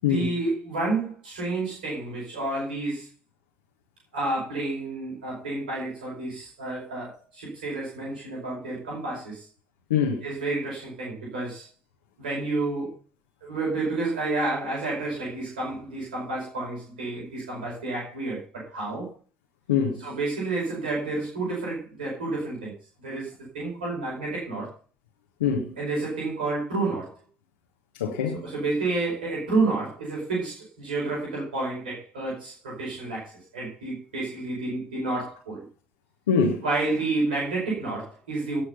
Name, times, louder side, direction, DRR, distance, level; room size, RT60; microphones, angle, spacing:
voice 1, 0.0-3.1 4.1-9.5 10.2-11.7 12.2-12.9 13.4-19.1 20.0-22.7 23.0-24.7 25.8-27.1 28.3-35.6 36.6-38.6, right 2 dB, 80° right, 5.0 m, -30 dB
voice 2, 9.9-10.2 19.7-20.0 25.4-25.7 28.0-28.4 36.3-36.6, left 6 dB, 80° left, 1.5 m, -23 dB
17.5 x 6.5 x 5.5 m
figure-of-eight pair, 45°, 5 cm